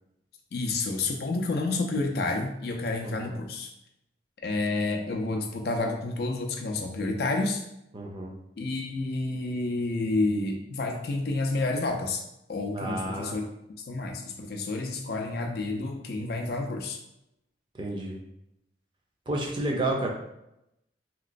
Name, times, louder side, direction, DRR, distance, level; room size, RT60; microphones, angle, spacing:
voice 1, 0.5-3.7 4.4-7.6 8.6-12.2 12.5-13.5 13.8-17.0, left 2 dB, 55° left, 2 dB, 0.4 m, -29 dB
voice 2, 3.0-3.3 7.9-8.4 12.7-13.3 17.8-18.2 19.3-20.1, right 1 dB, 25° right, -1 dB, 0.4 m, -31 dB
3.0 x 2.9 x 2.5 m, 0.84 s
head